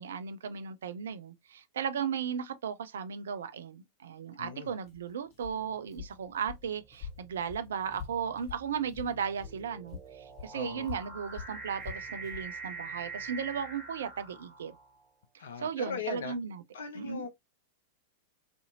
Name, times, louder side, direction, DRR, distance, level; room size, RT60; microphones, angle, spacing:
voice 1, 0.0-14.8 15.3-16.6 16.9-17.2, right 7 dB, 70° right, 0.4 m, -36 dB
voice 2, 4.4-4.7 10.5-10.9 15.4-16.4 16.7-17.3, left 6 dB, 70° left, 0.5 m, -39 dB
Walk footsteps, 4.8-9.6 9.9-12.5, left 7 dB, 35° left, 1.0 m, -45 dB
sound 1, 5.6-6.0 6.8-15.0, right 4 dB, 30° right, 1.4 m, -45 dB
2.7 x 2.5 x 2.6 m
figure-of-eight pair, 95°, 0 cm